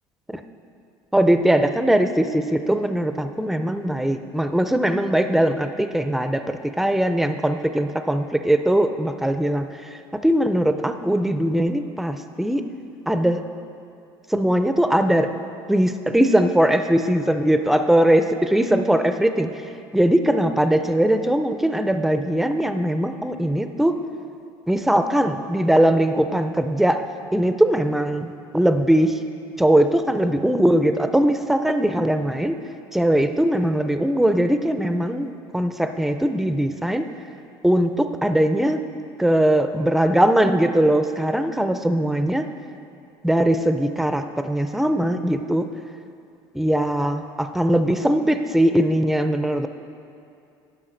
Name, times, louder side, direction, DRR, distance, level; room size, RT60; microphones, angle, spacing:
voice 1, 1.1-9.7 10.1-12.7 13.1-13.5 14.3-15.3 15.7-19.5 19.9-24.0 24.7-27.0 27.3-29.2 29.6-32.6 32.9-37.0 37.6-38.8 39.2-42.5 43.2-45.7 46.5-49.7, right 1 dB, ahead, 8 dB, 0.5 m, -20 dB
11.0 x 5.7 x 4.0 m, 2.6 s
supercardioid pair, 80°, 11 cm